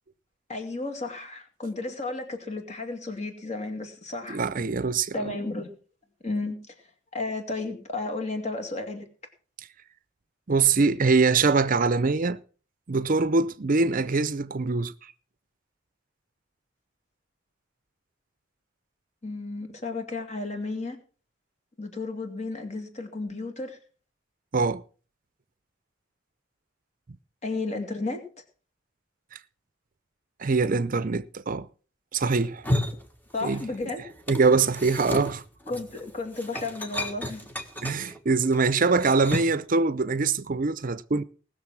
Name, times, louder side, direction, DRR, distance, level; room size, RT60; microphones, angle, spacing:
voice 1, 0.5-4.4 5.1-5.7 6.2-6.7 7.1-9.1 19.2-21.0 21.8-23.8 27.4-28.2 33.3-34.0 35.7-37.4, left 3 dB, 35° left, 2.5 m, -33 dB
voice 2, 4.3-5.3 10.5-12.4 12.9-15.1 24.5-24.8 29.3-29.4 30.4-31.7 32.1-32.7 33.4-33.6 34.3-35.4 37.8-41.2, right 4 dB, 45° right, 0.6 m, -23 dB
sound 1, 32.4-33.9 34.1-39.7, left 1 dB, 10° left, 1.5 m, -33 dB
19.0 x 6.7 x 6.0 m
head